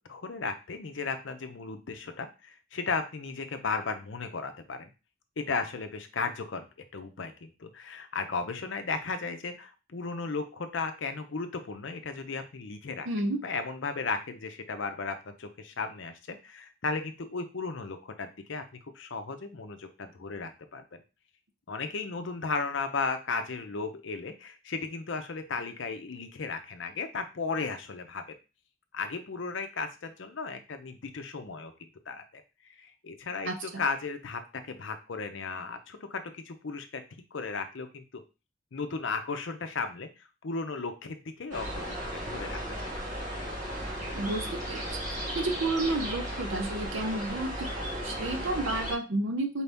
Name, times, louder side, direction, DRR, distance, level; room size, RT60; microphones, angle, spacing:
voice 1, 0.1-4.9 5.4-6.7 6.9-13.1 13.4-21.0 21.7-28.3 28.9-31.7 32.1-32.4 32.8-37.0 37.3-38.2 38.7-41.9 42.1-42.9, left 4 dB, 60° left, 8 dB, 0.6 m, -35 dB
voice 2, 13.1-13.4 33.4-33.8 44.1-44.8 45.3-47.7 48.0-49.6, right 2 dB, 65° right, 5 dB, 0.7 m, -31 dB
sound 1, 41.5-48.9, equal, 40° right, 1.2 m, -35 dB
4.6 x 2.7 x 3.4 m, 0.30 s
head